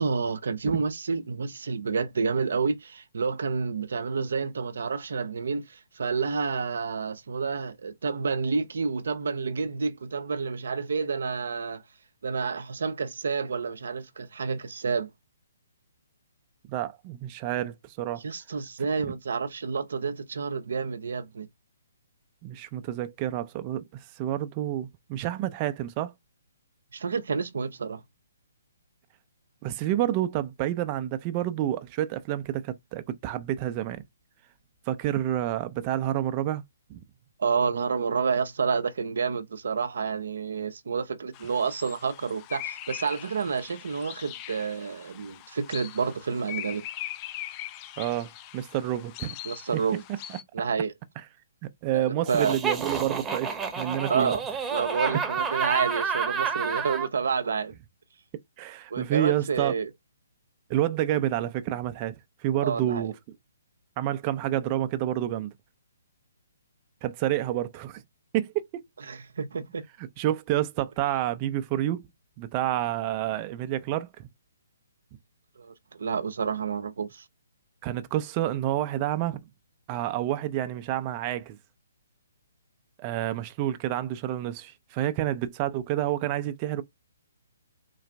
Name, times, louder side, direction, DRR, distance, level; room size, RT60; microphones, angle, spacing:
voice 1, 0.0-11.8 12.2-15.1 18.2-21.5 26.9-28.0 37.4-46.9 49.4-50.0 50.5-50.9 51.9-52.6 54.1-54.4 54.7-57.7 58.9-59.9 62.6-63.1 69.1-69.8 75.6-77.2, right 5 dB, 70° right, 0.6 m, -29 dB
voice 2, 16.7-18.2 22.4-26.1 29.6-34.0 34.9-36.6 36.9-37.0 48.0-49.4 49.7-49.8 50.3-50.4 51.8-54.3 58.6-59.7 60.7-62.1 62.4-63.1 64.0-65.5 67.0-68.0 68.3-68.8 70.0-72.1 72.4-74.3 77.8-79.4 79.9-81.6 83.0-86.8, right 13 dB, 30° right, 0.5 m, -29 dB
sound 1, 41.3-50.4, left 13 dB, 30° left, 0.5 m, -41 dB
Laughter, 52.3-57.1, right 6 dB, 15° right, 0.9 m, -29 dB
3.9 x 2.5 x 3.3 m
hypercardioid pair, 140°, 0 cm